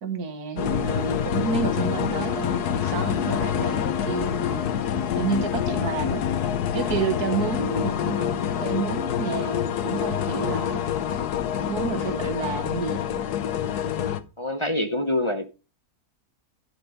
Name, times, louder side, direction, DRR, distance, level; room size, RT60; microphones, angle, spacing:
voice 1, 0.0-4.9 5.2-6.3 6.7-10.9 11.7-13.2, right 5 dB, 75° right, 1.9 m, -30 dB
sound 1, 0.6-14.2, left 9 dB, 80° left, 1.4 m, -26 dB
voice 2, 11.8-12.3 14.4-15.5, left 1 dB, 25° left, 0.7 m, -27 dB
11.5 x 6.1 x 5.1 m
omnidirectional pair, 1.6 m